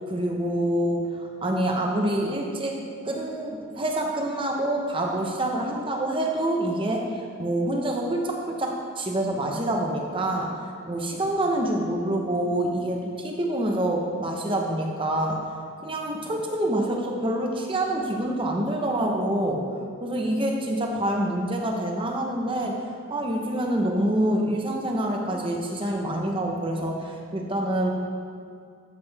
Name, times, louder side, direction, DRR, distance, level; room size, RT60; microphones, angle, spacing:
voice 1, 0.0-2.8 3.0-7.1 7.4-15.4 15.8-19.6 20.0-22.8 23.1-27.9, right 1 dB, 25° right, 0 dB, 1.0 m, -26 dB
13.5 x 7.8 x 3.5 m, 2.3 s
head